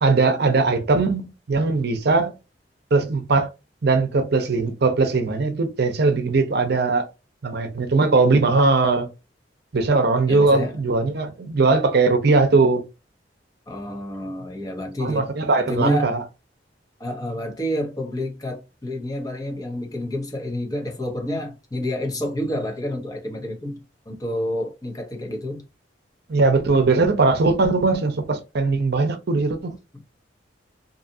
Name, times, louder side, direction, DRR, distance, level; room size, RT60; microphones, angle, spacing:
voice 1, 0.0-2.3 2.9-3.5 3.8-7.0 7.4-9.1 9.7-12.8 15.0-16.2 26.3-29.8, right 3 dB, 60° right, 0.6 m, -20 dB
voice 2, 10.3-10.8 13.7-15.3 15.7-16.1 17.0-25.6, left 1 dB, 20° left, 0.9 m, -29 dB
2.7 x 2.4 x 2.6 m
head